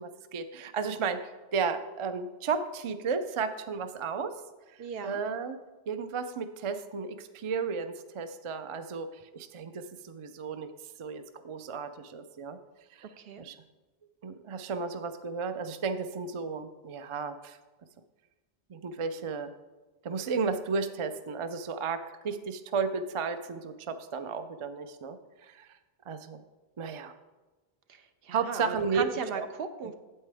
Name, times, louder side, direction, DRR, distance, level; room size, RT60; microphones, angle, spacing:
voice 1, 0.0-4.4 4.7-5.6 5.9-10.7 11.0-12.6 12.9-13.1 13.4-13.6 14.2-17.6 18.7-19.5 20.0-25.7 26.1-26.4 26.8-27.1 28.3-29.1 29.3-29.5 29.8-29.9, right 5 dB, 45° right, 10 dB, 0.4 m, -33 dB
voice 2, 4.8-5.2 13.2-13.4 27.9-29.9, right 5 dB, 70° right, 9 dB, 0.9 m, -37 dB
8.7 x 8.2 x 3.4 m, 1.2 s
omnidirectional pair, 1.0 m